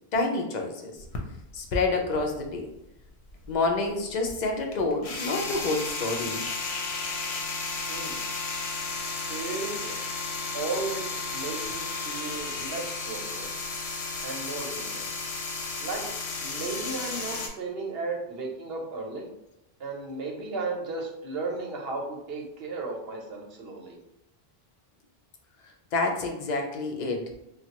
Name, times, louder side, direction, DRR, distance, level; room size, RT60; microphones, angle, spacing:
voice 1, 0.1-1.0 1.5-2.7 3.5-6.4 25.9-27.2, left 3 dB, 55° left, 2 dB, 0.6 m, -28 dB
sound 1, 1.0-2.8 3.1-17.5, left 3 dB, 80° left, 0.9 m, -34 dB
voice 2, 7.9-8.2 9.2-10.0 10.5-13.5 14.2-15.1 15.8-16.0 16.4-19.3 19.8-24.0, right 3 dB, 75° right, 0 dB, 0.9 m, -35 dB
3.2 x 2.3 x 2.8 m, 0.85 s
omnidirectional pair, 1.0 m